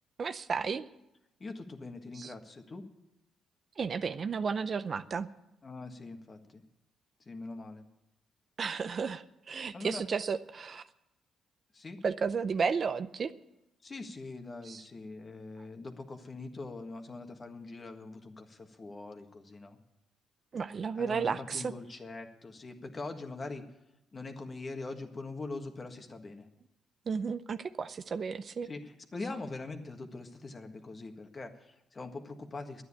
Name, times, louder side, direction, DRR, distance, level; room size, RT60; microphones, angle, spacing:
voice 1, 0.2-0.9 2.1-2.3 3.8-5.3 8.6-10.8 12.0-13.3 14.7-14.8 20.5-21.7 27.1-28.7, right 5 dB, 45° right, 12 dB, 0.5 m, -33 dB
voice 2, 1.4-2.9 5.6-6.6 7.2-7.8 9.7-10.0 11.7-12.0 13.8-19.8 20.9-23.6 24.1-26.5 28.6-32.8, left 3 dB, 35° left, 5 dB, 1.6 m, -43 dB
11.0 x 9.5 x 9.8 m, 0.90 s
cardioid pair, 90°, 0 cm